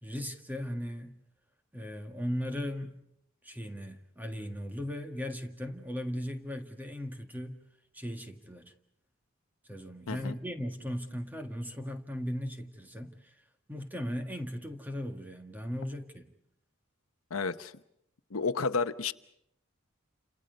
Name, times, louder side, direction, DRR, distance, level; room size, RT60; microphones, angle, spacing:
voice 1, 0.0-1.2 1.7-3.0 3.4-7.6 7.9-8.7 9.7-13.3 13.7-16.3, equal, 10° right, 1.7 m, -37 dB
voice 2, 17.3-17.7 18.3-19.1, left 4 dB, 80° left, 0.9 m, -31 dB
29.5 x 27.5 x 5.3 m
head